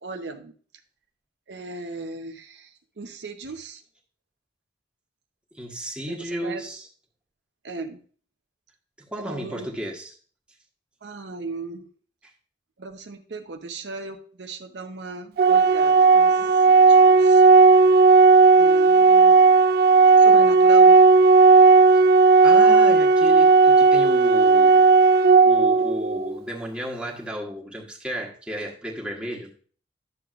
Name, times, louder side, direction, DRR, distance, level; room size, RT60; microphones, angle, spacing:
voice 1, 0.0-0.5 1.5-2.7 3.0-3.8 6.1-6.6 7.6-8.0 9.2-9.7 11.0-11.9 12.8-17.4 18.6-19.4 20.2-21.0, right 3 dB, 80° right, 0.8 m, -37 dB
voice 2, 5.5-6.9 9.1-10.1 21.9-22.0 22.4-24.9 25.4-29.5, equal, 5° right, 1.4 m, -33 dB
Organ, 15.4-26.4, right 4 dB, 60° right, 0.3 m, -14 dB
10.5 x 6.9 x 2.5 m
head